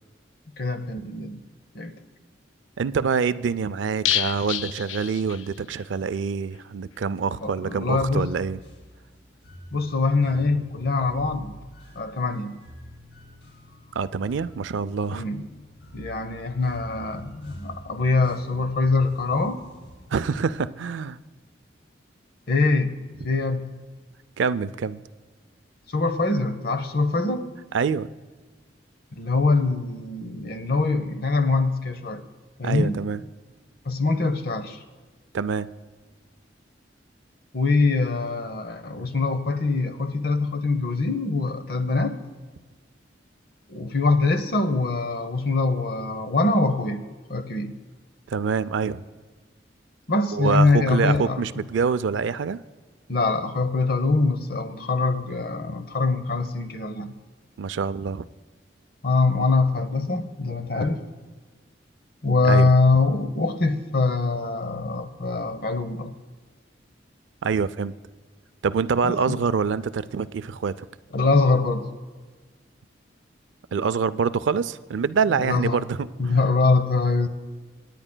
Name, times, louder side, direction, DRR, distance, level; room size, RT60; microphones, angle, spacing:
voice 1, 0.6-1.4 1.7-2.0 7.4-8.3 9.7-11.5 12.0-12.6 15.1-15.4 15.9-19.6 22.5-22.9 23.2-23.7 25.9-27.5 29.2-32.2 32.6-33.0 33.9-34.8 37.5-42.2 43.7-47.0 47.3-47.7 50.1-51.4 53.1-57.1 59.0-61.0 62.2-66.1 69.3-69.4 71.1-71.9 75.4-75.9 76.2-77.3, left 3 dB, 50° left, 9 dB, 0.8 m, -23 dB
voice 2, 2.8-8.6 14.0-15.3 20.1-21.2 24.4-25.0 27.7-28.1 32.6-33.2 35.3-35.7 48.3-49.0 50.3-52.6 57.6-58.2 62.5-62.7 67.4-68.0 68.6-70.9 73.7-76.4, right 5 dB, 80° right, 15 dB, 0.4 m, -25 dB
sound 1, 4.0-5.8 6.1-6.2 6.5-6.6, left 11 dB, 85° left, 0.4 m, -28 dB
sound 2, 7.8-20.6, equal, 70° left, 2.4 m, -47 dB
26.0 x 10.0 x 2.2 m, 1.4 s
head